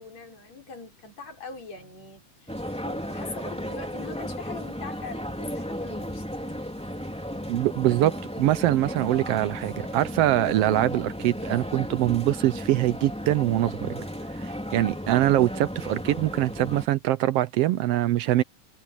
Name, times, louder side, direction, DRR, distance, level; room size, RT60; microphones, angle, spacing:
voice 1, 0.0-6.6, left 4 dB, 55° left, 7.3 m, -42 dB
sound 1, 2.5-16.9, equal, ahead, 2.7 m, -34 dB
voice 2, 7.5-14.0 14.3-18.4, right 14 dB, 85° right, 1.3 m, -23 dB
omnidirectional pair, 3.6 m